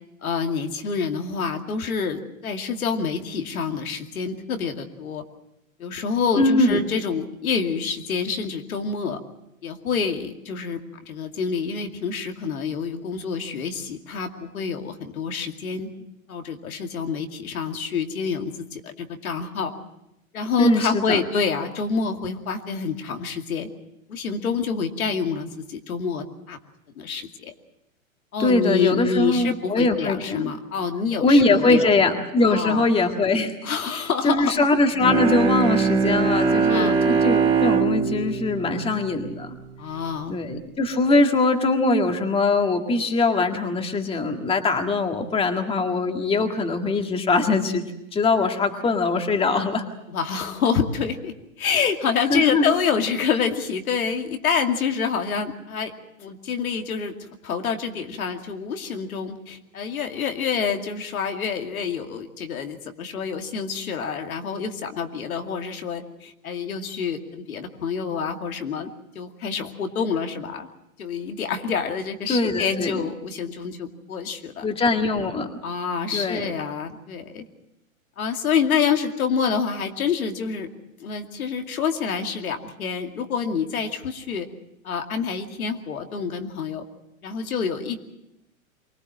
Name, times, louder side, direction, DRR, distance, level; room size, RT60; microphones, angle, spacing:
voice 1, 0.2-5.2 5.8-9.2 9.6-15.9 16.3-19.7 20.3-23.7 24.1-26.6 27.0-27.5 28.3-32.0 32.4-32.9 33.6-34.6 36.7-37.0 39.8-40.4 50.1-55.9 56.2-57.1 57.4-68.9 69.1-70.7 71.0-74.7 75.6-77.4 78.2-80.7 81.0-84.5 84.8-86.8 87.2-88.0, left 6 dB, 80° left, 4 dB, 2.5 m, -27 dB
voice 2, 6.4-6.8 20.6-21.2 28.4-30.5 31.1-39.6 40.3-47.8 48.1-49.8 52.3-52.7 72.3-72.9 74.6-75.5 76.1-76.5, left 3 dB, 15° left, 5 dB, 1.9 m, -22 dB
Bowed string instrument, 34.9-39.8, right 5 dB, 15° right, 2.5 m, -22 dB
24.0 x 19.0 x 7.6 m, 0.85 s
hypercardioid pair, 130°, 42 cm